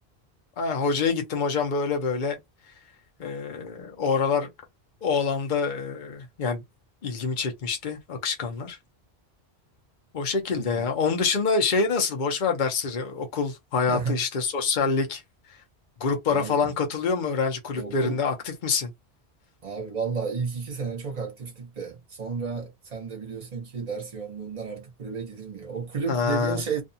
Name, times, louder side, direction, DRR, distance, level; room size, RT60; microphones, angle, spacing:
voice 1, 0.6-2.4 3.2-4.5 5.0-6.6 7.0-8.8 10.1-15.2 16.0-18.9 26.1-26.6, left 5 dB, 50° left, 0.8 m, -26 dB
voice 2, 13.9-14.2 16.3-16.6 17.8-18.2 19.6-26.8, right 5 dB, 40° right, 0.9 m, -32 dB
2.6 x 2.3 x 2.7 m
omnidirectional pair, 1.1 m